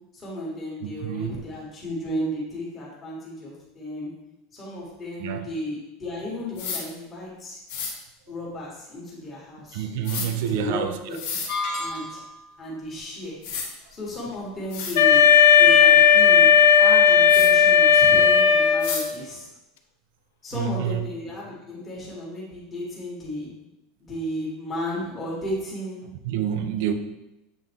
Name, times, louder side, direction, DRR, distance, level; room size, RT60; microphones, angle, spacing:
voice 1, 0.1-4.1 4.5-7.6 8.3-9.8 10.5-11.1 11.8-12.2 12.6-13.4 13.9-15.3 15.6-16.5 16.8-19.5 20.4-23.5 24.0-26.0 26.8-26.9, left 1 dB, 15° left, -5 dB, 1.6 m, -34 dB
voice 2, 1.0-1.3 5.2-5.5 9.7-11.2 20.5-21.0 26.2-26.9, right 10 dB, 55° right, 8 dB, 0.5 m, -28 dB
sound 1, 6.6-6.8 7.7-7.9 10.0-10.3 11.1-11.5 13.0-13.1 13.4-13.7 14.3-14.4 14.7-15.0 17.3-17.5 18.8-19.1, left 6 dB, 60° left, 1.2 m, -31 dB
sound 2, 11.5-12.5, left 2 dB, 40° left, 1.0 m, -30 dB
Wind instrument woodwind instrument, 14.9-19.1, left 7 dB, 90° left, 0.6 m, -15 dB
7.7 x 3.6 x 3.5 m, 0.95 s
supercardioid pair, 180°, 0 cm